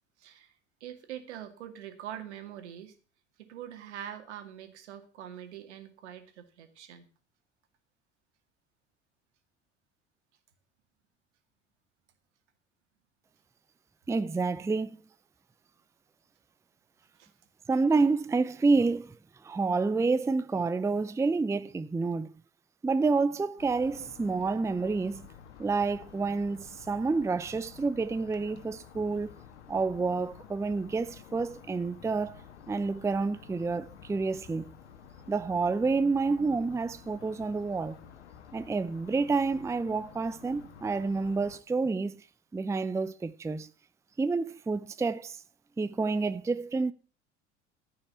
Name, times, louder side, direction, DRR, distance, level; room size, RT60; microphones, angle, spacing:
voice 1, 0.2-0.5 0.8-2.9 3.4-7.1 17.2-17.3, right 10 dB, 75° right, 2.3 m, -44 dB
voice 2, 14.1-15.0 17.7-19.2 19.4-22.3 22.8-25.3 25.6-29.3 29.7-32.4 32.7-34.7 35.3-38.0 38.5-42.2 42.5-43.7 44.2-45.4 45.8-46.9, right 4 dB, 10° right, 0.6 m, -29 dB
sound 1, 23.6-41.6, left 8 dB, 75° left, 1.4 m, -51 dB
14.5 x 5.7 x 6.9 m
hypercardioid pair, 70°, 35 cm